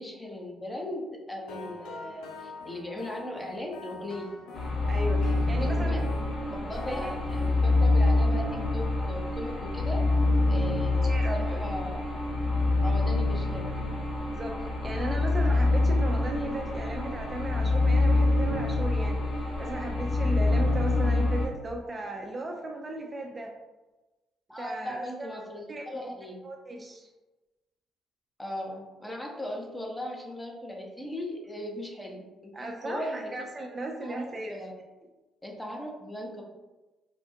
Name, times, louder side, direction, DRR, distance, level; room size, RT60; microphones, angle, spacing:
voice 1, 0.0-4.3 5.2-6.1 6.5-10.1 10.5-12.0 12.8-13.7 24.5-26.4 28.4-33.5 34.0-34.7 35.4-36.4, left 1 dB, 15° left, 0 dB, 0.9 m, -38 dB
sound 1, 1.5-7.5, left 3 dB, 80° left, 0.5 m, -44 dB
sound 2, 4.5-21.5, left 2 dB, 50° left, 1.1 m, -26 dB
voice 2, 4.9-6.1 6.9-7.1 11.0-11.6 14.3-23.5 24.6-25.4 25.7-26.1 26.4-27.1 32.5-34.5, right 2 dB, 35° right, 1 dB, 0.5 m, -36 dB
4.3 x 2.3 x 2.7 m, 1.1 s
hypercardioid pair, 55°, 0 cm